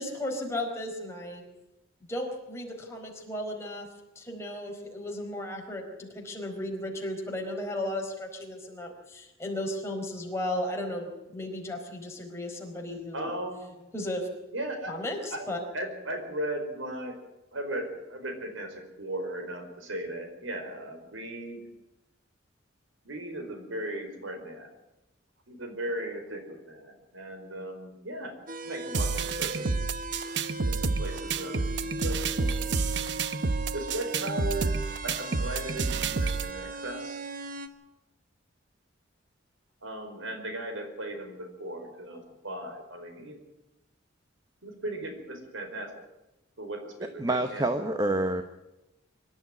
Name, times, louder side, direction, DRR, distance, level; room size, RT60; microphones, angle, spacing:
voice 1, 0.0-1.4 2.1-3.9 4.1-13.3 13.9-14.3 14.9-15.6, left 1 dB, 15° left, 0 dB, 4.7 m, -35 dB
voice 2, 13.1-13.8 14.5-14.9 15.3-15.4 15.7-17.1 17.5-21.6 23.0-24.7 25.5-28.3 28.6-29.7 30.6-32.7 33.7-34.8 35.0-37.2 39.8-42.2 42.4-43.4 44.6-45.9 46.6-47.6, right 1 dB, 85° right, 5 dB, 4.8 m, -37 dB
sound 1, 28.5-37.7, right 2 dB, 45° right, 1.5 m, -38 dB
sound 2, 28.9-36.5, right 4 dB, 65° right, 0.9 m, -29 dB
voice 3, 47.2-48.4, right 2 dB, 20° right, 8 dB, 1.0 m, -27 dB
24.5 x 12.0 x 9.5 m, 0.97 s
head